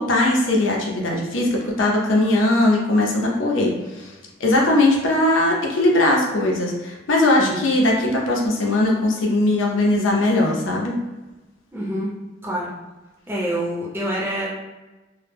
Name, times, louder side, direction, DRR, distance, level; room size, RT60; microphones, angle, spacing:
voice 1, 0.0-4.1 4.4-10.9, left 1 dB, 80° left, -1 dB, 0.6 m, -19 dB
voice 2, 11.7-12.1 12.4-12.7 13.3-14.5, right 1 dB, 10° right, -6 dB, 0.6 m, -26 dB
2.2 x 2.1 x 3.2 m, 1.1 s
head